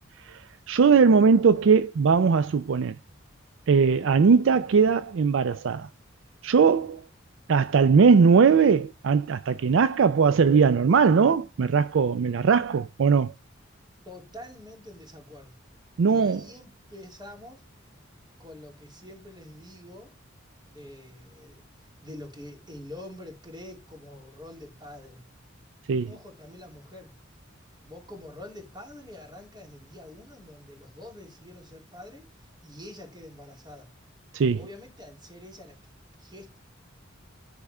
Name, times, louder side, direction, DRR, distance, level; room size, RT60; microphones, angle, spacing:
voice 1, 0.3-3.0 3.7-5.9 6.4-7.0 7.5-13.3 16.0-16.4 25.9-26.1 34.3-34.6, right 5 dB, 65° right, 0.4 m, -20 dB
voice 2, 14.0-15.6 16.0-17.6 18.4-20.1 20.6-25.2 26.0-27.1 27.8-33.9 34.5-36.6, left 1 dB, 25° right, 2.8 m, -46 dB
10.0 x 3.6 x 4.2 m
head